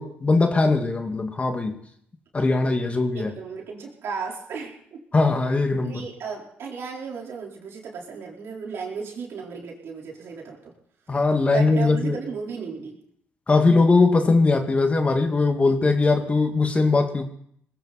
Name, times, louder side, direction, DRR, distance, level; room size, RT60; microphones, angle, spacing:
voice 1, 0.0-1.8 2.3-3.3 5.1-6.0 11.1-12.2 13.5-17.2, left 3 dB, 30° left, 5 dB, 2.3 m, -20 dB
voice 2, 3.1-5.0 5.8-10.7 11.5-13.0, right 5 dB, 70° right, -1 dB, 4.5 m, -35 dB
20.0 x 16.5 x 4.3 m, 0.68 s
cardioid pair, 75°, 4 cm